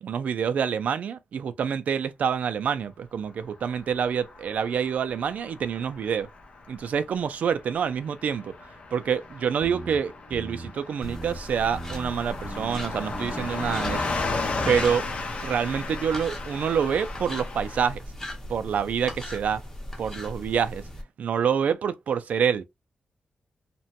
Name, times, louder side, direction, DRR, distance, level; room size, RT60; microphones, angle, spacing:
voice 1, 0.0-6.3 6.7-8.5 8.9-14.1 14.7-15.1 15.4-18.0 18.5-19.6 20.0-20.8 21.2-22.6, right 7 dB, 75° right, 0.3 m, -27 dB
Car passing by / Truck, 3.6-17.9, left 3 dB, 50° left, 0.7 m, -35 dB
sound 1, 9.6-10.0 10.3-10.7 11.0-11.4 11.7-12.1 12.4-12.8 13.1-13.5 13.8-14.2 14.5-14.9, right 1 dB, 20° right, 0.5 m, -38 dB
sound 2, 11.0-21.0, left 1 dB, 20° left, 0.8 m, -39 dB
2.9 x 2.2 x 2.7 m
wide cardioid pair, 170°, 3 cm